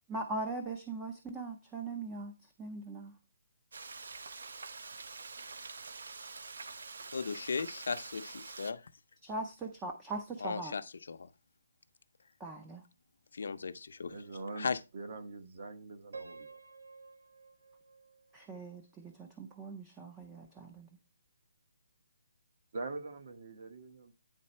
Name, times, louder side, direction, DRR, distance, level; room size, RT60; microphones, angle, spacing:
voice 1, 0.1-3.2 9.2-10.7 12.4-12.8 18.3-20.9, right 2 dB, 10° right, 0.5 m, -41 dB
Frying (food), 3.7-8.7, right 4 dB, 65° right, 0.7 m, -46 dB
voice 2, 7.1-8.8 10.4-11.3 13.3-14.2 14.6-14.8, left 5 dB, 60° left, 0.6 m, -37 dB
voice 3, 14.1-16.5 22.7-24.1, right 3 dB, 40° right, 1.0 m, -43 dB
Piano, 16.1-19.1, right 4 dB, 90° right, 1.1 m, -52 dB
9.6 x 4.0 x 4.3 m
hypercardioid pair, 180°, 0 cm